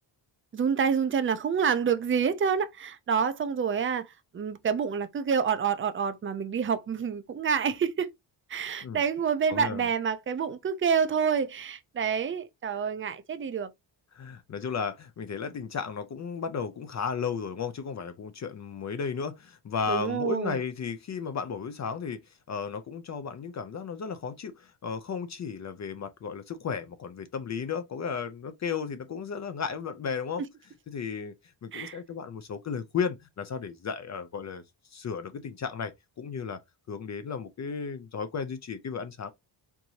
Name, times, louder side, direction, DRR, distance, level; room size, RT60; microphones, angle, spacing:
voice 1, 0.5-4.1 4.3-8.1 8.5-13.7 19.9-20.6 31.7-32.0, right 6 dB, 30° right, 0.4 m, -28 dB
voice 2, 9.5-9.9 14.1-22.2 22.5-30.4 30.9-31.3 31.6-34.6 34.9-36.6 36.9-39.3, left 6 dB, 40° left, 0.5 m, -34 dB
4.5 x 2.6 x 2.7 m
wide cardioid pair, 130°, 45 cm